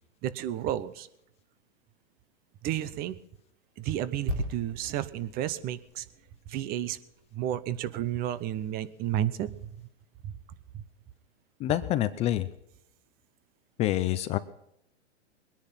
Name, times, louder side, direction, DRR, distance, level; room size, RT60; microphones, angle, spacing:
voice 1, 0.2-1.1 2.6-3.2 3.8-6.0 6.5-7.0 7.3-9.7 10.2-10.3 10.7-10.8, right 12 dB, 25° right, 16 dB, 0.9 m, -32 dB
sound 1, 4.3-7.9 8.2-8.4, right 1 dB, 50° right, 4.3 m, -38 dB
voice 2, 11.6-12.5 13.8-14.4, left 13 dB, 20° left, 12 dB, 0.5 m, -27 dB
22.0 x 10.5 x 5.7 m, 0.78 s
hypercardioid pair, 140°, 35 cm